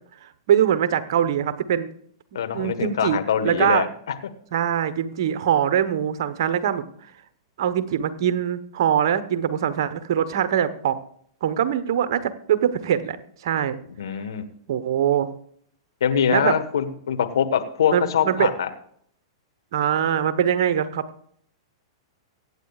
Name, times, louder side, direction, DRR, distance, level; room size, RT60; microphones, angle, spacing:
voice 1, 0.2-1.9 2.5-3.2 3.4-3.8 4.5-6.8 7.6-11.0 11.4-13.2 13.4-13.8 14.7-15.3 16.3-16.5 17.9-18.5 19.7-21.0, right 9 dB, 60° right, 11 dB, 1.2 m, -22 dB
voice 2, 2.3-3.9 14.0-14.4 16.0-18.7, left 8 dB, 70° left, 7 dB, 1.5 m, -23 dB
23.5 x 9.0 x 2.5 m, 0.64 s
hypercardioid pair, 110°, 3 cm